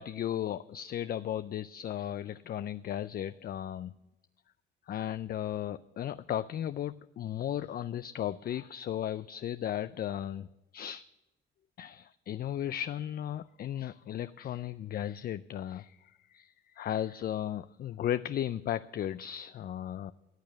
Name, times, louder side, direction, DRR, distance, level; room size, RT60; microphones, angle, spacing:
voice 1, 0.0-3.9 4.9-11.0 11.8-20.1, left 11 dB, 50° left, 13 dB, 0.4 m, -35 dB
14.0 x 8.5 x 9.2 m, 1.0 s
cardioid pair, 90°, 20 cm